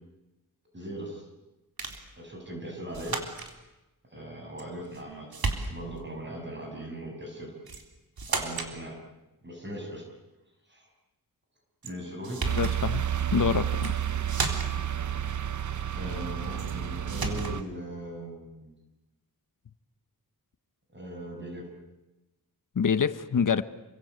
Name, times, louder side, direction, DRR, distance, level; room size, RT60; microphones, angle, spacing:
voice 1, 0.7-1.3 2.1-3.2 4.1-7.5 8.3-9.0 9.4-10.0 10.7-10.9 11.8-12.4 15.9-18.7 20.9-21.6, right 1 dB, 30° right, 1 dB, 6.8 m, -39 dB
sound 1, 1.8-2.1 2.9-3.5 4.6-5.0 5.3-6.0 7.7-7.9 8.2-8.8 11.8-11.9 12.2-12.8 13.7-14.0 14.3-14.9 16.6-16.8 17.1-17.6, right 3 dB, 75° right, 3.7 m, -33 dB
sound 2, 12.4-17.6, right 10 dB, 55° right, 0.9 m, -30 dB
voice 2, 12.5-13.0 13.3-13.9 22.7-23.6, left 6 dB, 60° left, 13 dB, 1.2 m, -26 dB
28.5 x 24.0 x 8.2 m, 1.0 s
wide cardioid pair, 105°, 36 cm